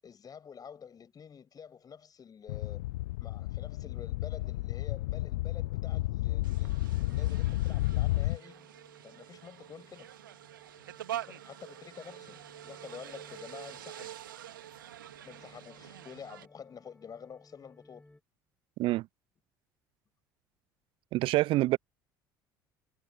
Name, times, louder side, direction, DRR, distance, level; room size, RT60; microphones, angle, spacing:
voice 1, 0.0-2.9 3.2-8.7 9.0-10.1 11.2-14.2 15.2-18.1, left 7 dB, 35° left, 7.3 m, -49 dB
sound 1, 2.5-8.4, left 18 dB, 70° left, 0.4 m, -32 dB
Fantastic apparition, 4.4-18.2, left 2 dB, 10° left, 2.8 m, -61 dB
sound 2, 6.4-16.5, right 12 dB, 80° right, 2.7 m, -46 dB
voice 2, 21.1-21.8, right 18 dB, 55° right, 0.5 m, -26 dB
figure-of-eight pair, 60°, 11 cm